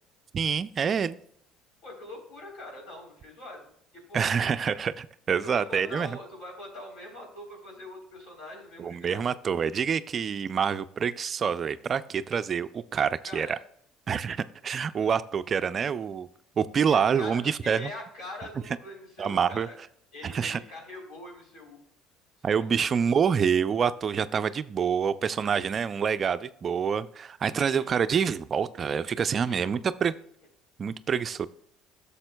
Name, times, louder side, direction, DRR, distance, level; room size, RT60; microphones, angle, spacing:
voice 1, 0.3-1.2 4.1-6.1 8.8-13.6 14.1-16.3 16.6-17.9 19.2-19.7 20.2-20.6 22.4-30.1 30.8-31.5, right 7 dB, 40° right, 13 dB, 0.3 m, -27 dB
voice 2, 1.8-3.7 4.1-4.3 5.4-9.2 13.2-13.6 16.9-19.8 20.1-21.8 22.6-22.9 27.6-28.0 29.5-29.7, left 1 dB, 65° left, 1 dB, 3.5 m, -43 dB
11.5 x 6.8 x 2.2 m, 0.65 s
supercardioid pair, 85°, 0 cm